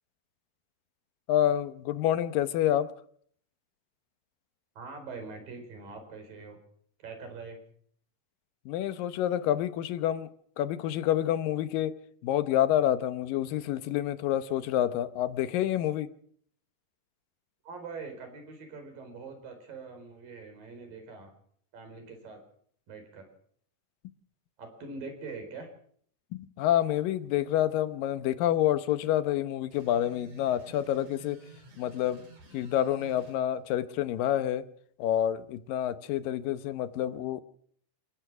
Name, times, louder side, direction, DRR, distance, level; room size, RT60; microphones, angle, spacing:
voice 1, 1.3-2.9 8.7-10.3 10.6-11.9 12.2-16.1 26.3-31.4 31.8-32.2 32.5-34.7 35.0-37.4, left 11 dB, 85° left, 2.7 m, -28 dB
voice 2, 4.8-6.6 7.0-7.6 17.6-21.3 21.7-22.4 22.9-23.3 24.6-25.7, right 4 dB, 85° right, 6.0 m, -43 dB
sound 1, 29.7-33.4, right 4 dB, 60° right, 6.1 m, -53 dB
28.5 x 15.0 x 6.1 m
omnidirectional pair, 3.9 m